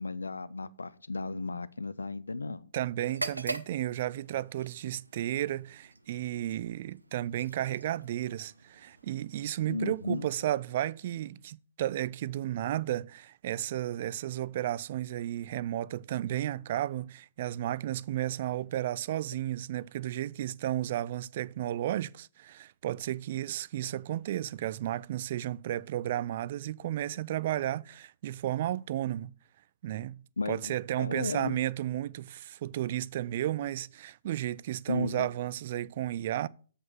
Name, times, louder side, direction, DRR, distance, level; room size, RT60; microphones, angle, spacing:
voice 1, 0.0-2.7 9.7-10.3 30.4-31.6 34.9-35.3, left 3 dB, 75° left, 0.4 m, -35 dB
voice 2, 2.7-29.3 29.8-36.5, right 13 dB, 45° right, 0.3 m, -33 dB
sound 1, 3.0-10.8, right 2 dB, 85° right, 0.7 m, -44 dB
7.8 x 4.9 x 5.8 m
figure-of-eight pair, 115°, 0 cm